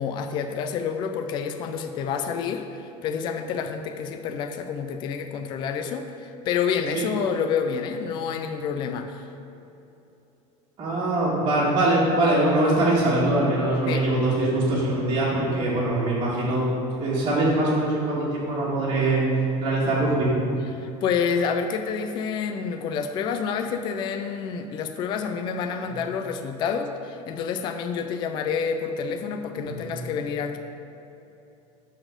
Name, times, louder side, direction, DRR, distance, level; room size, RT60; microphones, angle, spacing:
voice 1, 0.0-9.3 13.9-14.1 20.7-30.6, left 6 dB, 30° left, 6 dB, 0.4 m, -28 dB
voice 2, 10.8-16.6 17.0-19.2 19.6-20.3 25.9-26.0 29.6-29.9, right 2 dB, 30° right, -8 dB, 1.8 m, -23 dB
12.0 x 4.1 x 5.2 m, 2.9 s
cardioid pair, 170°, 16 cm